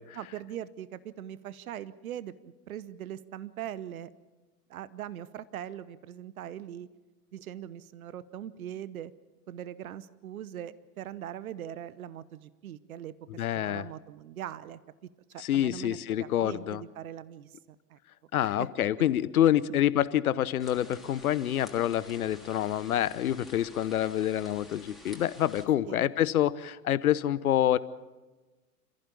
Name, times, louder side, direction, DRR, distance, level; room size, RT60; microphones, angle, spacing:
voice 1, 0.1-4.1 4.7-6.9 7.3-9.1 9.5-13.1 13.5-14.8 15.3-17.5 17.9-18.0 18.4-18.7 25.9-26.1, right 11 dB, 65° right, 17 dB, 1.0 m, -41 dB
voice 2, 13.4-13.9 15.4-16.8 18.3-27.8, left 11 dB, 65° left, 18 dB, 1.0 m, -27 dB
sound 1, 20.6-25.7, left 1 dB, ahead, 3.1 m, -51 dB
28.0 x 15.0 x 7.0 m, 1.2 s
figure-of-eight pair, 90°, 47 cm